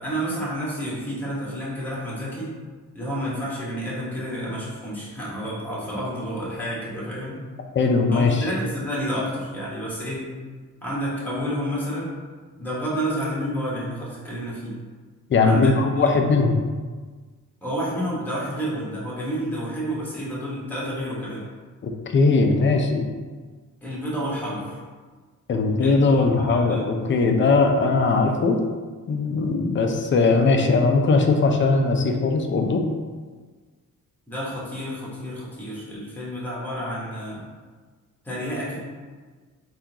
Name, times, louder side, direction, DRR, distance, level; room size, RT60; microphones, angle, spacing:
voice 1, 0.0-2.5 2.9-7.4 8.1-10.3 10.8-12.1 12.6-14.8 15.4-16.1 17.6-21.4 23.8-24.8 25.8-26.9 34.3-37.4 38.2-38.8, equal, 5° left, -7 dB, 1.2 m, -30 dB
voice 2, 7.7-8.5 15.3-16.6 21.8-23.1 25.5-28.6 29.1-32.8, left 3 dB, 35° left, 4 dB, 0.4 m, -20 dB
3.6 x 2.5 x 2.9 m, 1.4 s
cardioid pair, 80°, 34 cm